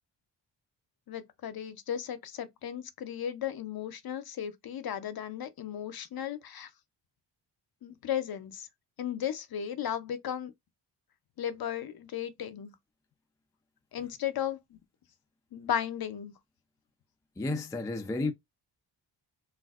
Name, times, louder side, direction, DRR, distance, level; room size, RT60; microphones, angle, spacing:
voice 1, 1.1-6.7 7.8-8.7 9.0-10.5 11.4-12.7 13.9-14.8 15.5-16.3, left 9 dB, 55° left, 0.6 m, -35 dB
voice 2, 17.4-18.3, left 2 dB, 10° left, 0.3 m, -31 dB
3.3 x 2.4 x 2.3 m
cardioid pair, 95°, 45 cm